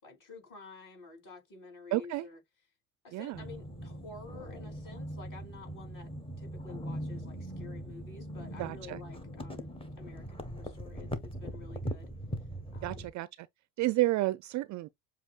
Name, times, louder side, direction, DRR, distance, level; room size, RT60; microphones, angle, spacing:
voice 1, 0.0-2.4 3.0-9.7 10.0-12.1 12.7-13.1, left 3 dB, 40° left, 3.3 m, -50 dB
voice 2, 1.9-2.3 3.1-3.4 8.6-9.0 12.8-13.5 13.8-14.9, right 17 dB, 40° right, 0.4 m, -31 dB
sound 1, 3.3-13.1, equal, 10° left, 1.0 m, -41 dB
7.2 x 2.7 x 2.3 m
hypercardioid pair, 75°, 47 cm